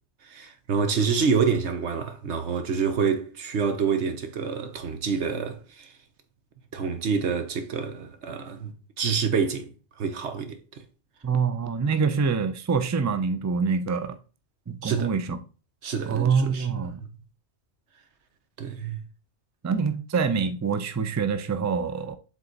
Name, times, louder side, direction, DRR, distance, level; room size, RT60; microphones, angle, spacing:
voice 1, 0.3-5.9 6.7-9.7 10.0-10.6 14.8-15.1 15.8-16.9 18.6-19.0, right 6 dB, 85° right, 1.3 m, -27 dB
voice 2, 11.2-14.2 14.7-15.4 16.1-17.0 19.6-22.2, right 5 dB, 25° right, 0.4 m, -25 dB
7.5 x 3.9 x 4.0 m
omnidirectional pair, 1.1 m